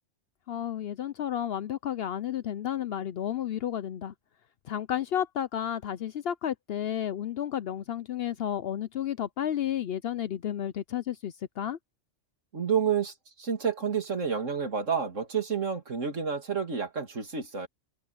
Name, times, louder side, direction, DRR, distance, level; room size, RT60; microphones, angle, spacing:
voice 1, 0.5-4.1 4.6-11.8, left 10 dB, 60° left, 0.7 m, -32 dB
voice 2, 12.5-17.7, right 6 dB, 75° right, 3.0 m, -29 dB
omnidirectional pair, 1.3 m